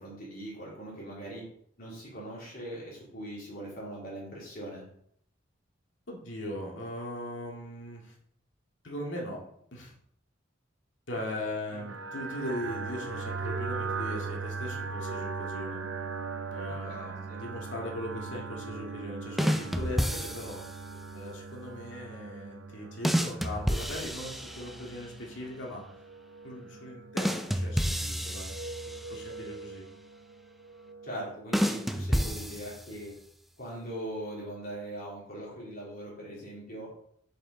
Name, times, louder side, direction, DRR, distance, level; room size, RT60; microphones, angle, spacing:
voice 1, 0.0-1.4 1.8-4.8 11.7-11.8 16.8-17.4 31.0-33.1 33.6-36.9, right 1 dB, 50° left, -5 dB, 2.6 m, -41 dB
voice 2, 6.1-8.1 8.8-9.4 9.7-9.9 11.1-15.8 16.5-20.6 21.1-25.8 26.4-28.5 29.1-29.9, left 1 dB, 70° left, -2 dB, 2.0 m, -39 dB
sound 1, 11.7-31.4, right 4 dB, 75° right, 0.6 m, -40 dB
sound 2, 19.4-20.8 23.0-25.0 27.2-29.3 31.5-33.1, equal, ahead, 0.4 m, -30 dB
7.8 x 5.1 x 3.8 m, 0.69 s
head